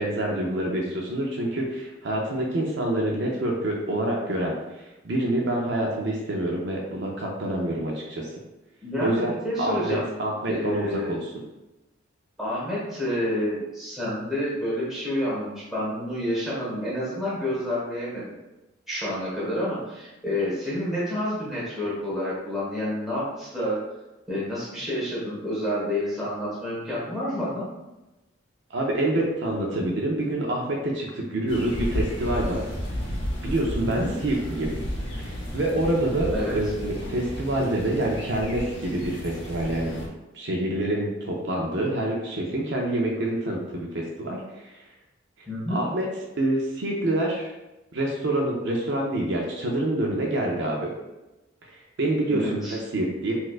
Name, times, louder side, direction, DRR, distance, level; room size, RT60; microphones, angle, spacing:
voice 1, 0.0-4.6 5.0-8.3 9.0-9.3 9.6-11.3 28.7-32.7 33.4-34.7 35.2-39.9 40.3-44.7 45.7-46.1 46.4-47.5 47.9-50.9 51.6-51.7 52.0-52.7 52.9-53.4, right 1 dB, 60° right, -1 dB, 0.5 m, -26 dB
voice 2, 8.8-10.1 10.5-11.1 12.4-18.3 18.9-23.8 24.3-27.6 33.7-34.1 36.3-36.6 45.4-45.8 52.3-52.8, left 1 dB, ahead, -9 dB, 1.3 m, -29 dB
sound 1, 31.5-40.1, equal, 65° left, 0.8 m, -33 dB
4.1 x 2.4 x 2.4 m, 1.0 s
head